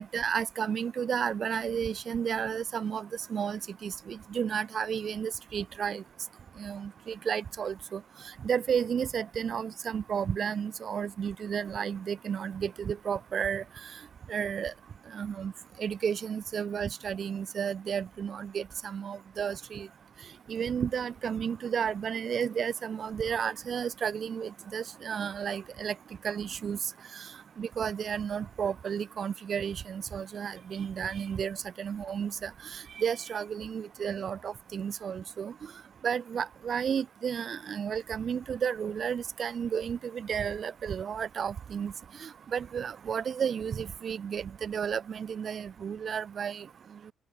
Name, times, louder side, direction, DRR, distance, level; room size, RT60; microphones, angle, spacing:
voice 1, 0.0-6.0 6.6-8.0 8.4-13.6 14.3-14.7 15.1-15.5 15.8-19.9 20.5-26.0 26.2-26.8 27.1-27.3 27.6-35.5 36.0-41.9 42.2-46.7, right 7 dB, 35° right, 3.4 m, -32 dB
open air
cardioid pair, 170°, 0 cm